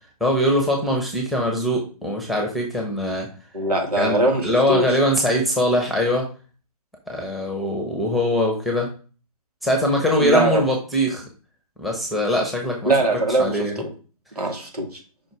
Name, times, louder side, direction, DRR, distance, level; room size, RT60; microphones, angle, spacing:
voice 1, 0.2-3.3 4.0-6.3 7.1-8.9 9.6-11.2 11.8-12.9 13.4-13.8 14.4-14.5, left 1 dB, ahead, 0 dB, 1.2 m, -22 dB
voice 2, 3.5-4.9 10.2-10.6 12.9-13.9 14.4-14.9, right 2 dB, 85° right, 2 dB, 2.6 m, -21 dB
5.6 x 4.6 x 4.8 m, 0.36 s
figure-of-eight pair, 140°, 19 cm